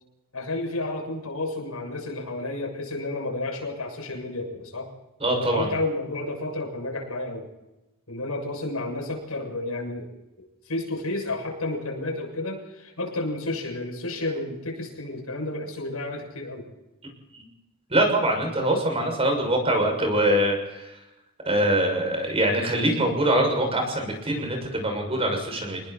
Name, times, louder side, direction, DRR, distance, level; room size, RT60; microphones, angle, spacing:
voice 1, 0.3-4.9 5.3-7.5 8.1-10.1 10.7-16.7, left 2 dB, 85° left, 1 dB, 7.2 m, -31 dB
voice 2, 5.2-5.7 17.3-17.4 17.9-20.9 21.4-25.8, right 1 dB, 30° right, 3 dB, 6.7 m, -23 dB
29.0 x 20.5 x 4.4 m, 0.96 s
head